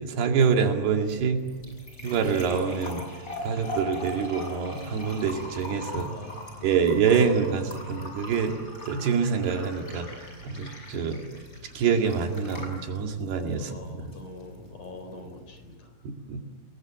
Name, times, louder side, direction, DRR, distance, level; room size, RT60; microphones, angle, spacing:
voice 1, 0.0-1.4 2.0-3.0 3.4-6.1 6.6-8.6 8.9-10.1 10.4-11.2 11.8-14.1 16.0-16.4, right 6 dB, 75° right, 3 dB, 4.1 m, -26 dB
sound 1, 0.8-15.7, left 1 dB, 20° left, 7.2 m, -41 dB
voice 2, 5.9-6.7 13.6-15.9, left 2 dB, 50° left, 6 dB, 5.7 m, -43 dB
29.5 x 21.0 x 7.6 m, 1.4 s
omnidirectional pair, 4.7 m